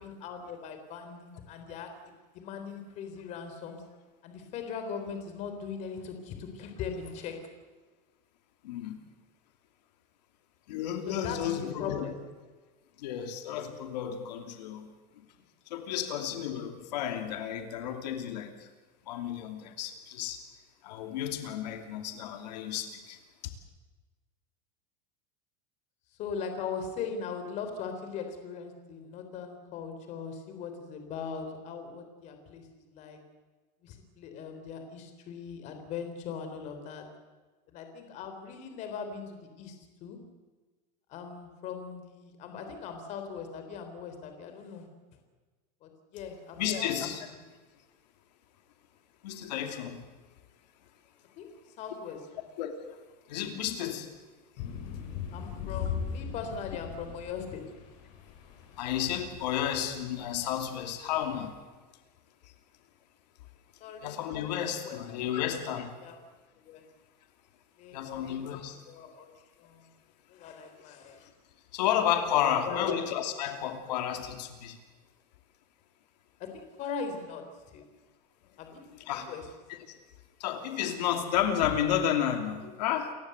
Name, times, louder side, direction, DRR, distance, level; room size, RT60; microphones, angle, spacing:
voice 1, 0.0-1.9 2.3-3.8 4.2-7.4 11.1-12.2 26.2-33.2 33.8-37.0 37.7-40.2 41.1-44.9 45.8-47.1 51.4-51.5 51.8-52.4 55.3-57.6 63.8-64.1 64.8-65.0 65.3-65.4 66.0-66.2 66.6-66.8 67.8-69.3 69.6-69.9 70.3-71.3 72.4-73.0 76.4-77.4 77.7-77.8 78.6-79.5, left 6 dB, 35° left, 6 dB, 3.8 m, -40 dB
voice 2, 8.6-9.0 10.7-12.1 13.0-14.9 15.7-18.7 19.1-20.4 20.8-23.2 46.6-47.3 49.2-50.0 52.6-52.7 53.3-54.1 58.8-61.6 64.0-65.9 67.9-68.8 71.7-74.8 78.9-79.3 79.7-79.8 80.4-83.1, left 10 dB, 90° left, 6 dB, 2.8 m, -32 dB
sound 1, 54.6-61.5, left 7 dB, 55° left, 6.1 m, -40 dB
28.5 x 16.0 x 8.1 m, 1.3 s
supercardioid pair, 175°, 21 cm